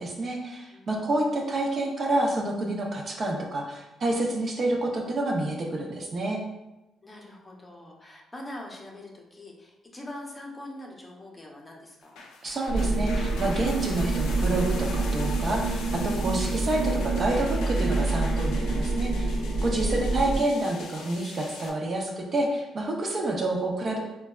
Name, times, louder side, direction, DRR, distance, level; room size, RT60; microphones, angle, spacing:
voice 1, 0.0-6.4 12.4-19.4 19.6-24.0, right 2 dB, 45° right, 0 dB, 0.6 m, -28 dB
voice 2, 0.7-1.1 7.0-12.2 19.6-20.2, left 1 dB, 20° left, -1 dB, 0.6 m, -43 dB
sound 1, 12.0-21.7, left 4 dB, 90° left, 0.4 m, -43 dB
sound 2, 12.7-20.4, right 2 dB, 75° right, 1.0 m, -27 dB
3.9 x 2.2 x 2.3 m, 0.98 s
cardioid pair, 90°, 0 cm